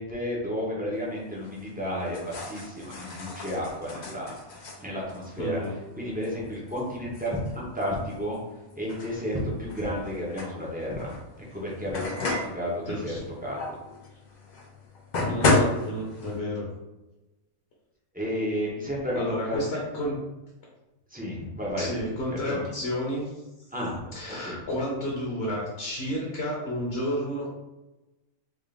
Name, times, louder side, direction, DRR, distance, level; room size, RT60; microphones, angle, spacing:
voice 1, 0.0-5.6 6.0-8.4 8.8-11.1 11.5-13.6 18.1-19.6 21.1-21.9 22.5-22.6 23.7-24.0 24.3-24.6, equal, 10° right, -5 dB, 0.5 m, -32 dB
sound 1, 0.9-16.4, left 2 dB, 70° left, 0.4 m, -33 dB
voice 2, 5.4-5.8 12.8-13.3 15.2-16.7 19.1-20.2 21.8-23.4 24.1-27.5, equal, 50° left, -4 dB, 1.0 m, -31 dB
3.6 x 2.4 x 3.6 m, 1.0 s
omnidirectional pair, 1.6 m